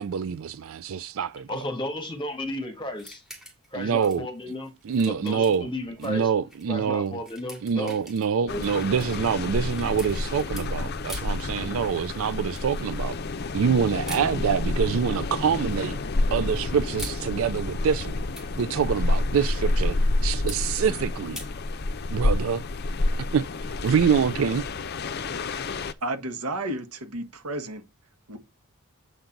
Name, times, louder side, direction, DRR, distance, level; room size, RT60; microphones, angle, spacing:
voice 1, 0.0-1.6 3.7-4.3 4.8-5.7 6.0-7.2 7.6-13.2 13.5-16.0 16.3-18.3 18.6-20.0 20.2-21.4 22.1-22.6 23.3-23.4 23.8-24.6, right 7 dB, 65° right, 0.4 m, -25 dB
voice 2, 1.5-3.2 3.7-4.7 5.0-6.3 6.7-8.0 8.4-8.6, left 1 dB, 20° left, 1.6 m, -33 dB
sound 1, 3.0-3.7 4.0-6.1 6.5-6.7 7.1-10.7 11.1-11.4 12.6-12.9 14.0-14.3 15.4-15.9 16.7-17.2 18.1-18.7 20.5-20.6 21.4-21.5, equal, ahead, 2.1 m, -43 dB
sound 2, 8.5-25.9, left 2 dB, 45° left, 0.6 m, -29 dB
voice 3, 26.0-27.8 28.3-28.4, right 1 dB, 85° right, 1.4 m, -32 dB
7.8 x 3.9 x 5.8 m
head